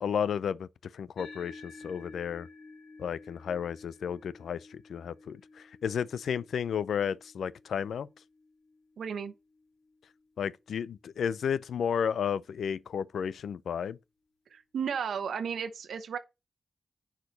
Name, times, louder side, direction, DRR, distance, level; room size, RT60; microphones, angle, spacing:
voice 1, 0.0-0.7 0.9-2.5 3.0-5.4 5.8-8.1 10.4-14.0, left 7 dB, 90° left, 0.5 m, -32 dB
sound 1, 1.2-9.9, left 3 dB, 50° left, 3.5 m, -53 dB
voice 2, 9.0-9.3 14.5-16.2, right 7 dB, 80° right, 0.9 m, -34 dB
10.5 x 4.9 x 4.1 m
wide cardioid pair, 165°, 0 cm